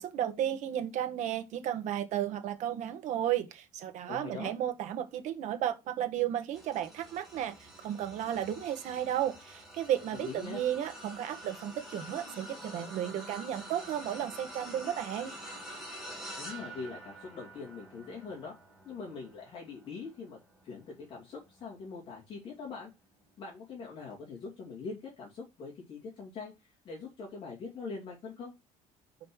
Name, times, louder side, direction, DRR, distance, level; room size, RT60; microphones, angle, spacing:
voice 1, 0.0-15.3, right 11 dB, 60° right, 1.3 m, -33 dB
voice 2, 4.1-4.5 10.2-10.6 16.4-18.5 18.8-20.4 20.6-22.9 23.4-28.5, left 4 dB, 35° left, 2.8 m, -43 dB
sound 1, 6.5-22.0 22.6-22.8 24.1-24.2, right 1 dB, ahead, 2.3 m, -47 dB
5.3 x 5.2 x 6.3 m
cardioid pair, 165°, 14 cm